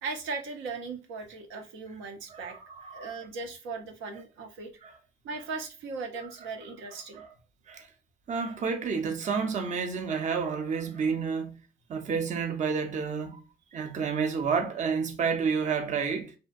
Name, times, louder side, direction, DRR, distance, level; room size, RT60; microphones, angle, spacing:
voice 1, 0.0-2.6 2.9-4.7 5.2-7.2, right 4 dB, 85° right, 0.5 m, -38 dB
voice 2, 2.3-3.1 4.8-5.0 6.2-6.3 7.1-7.3 7.7-7.9 8.3-11.5 11.9-13.4 13.7-16.3, right 5 dB, 40° right, 0.5 m, -30 dB
2.6 x 2.1 x 2.3 m
cardioid pair, 90°, 20 cm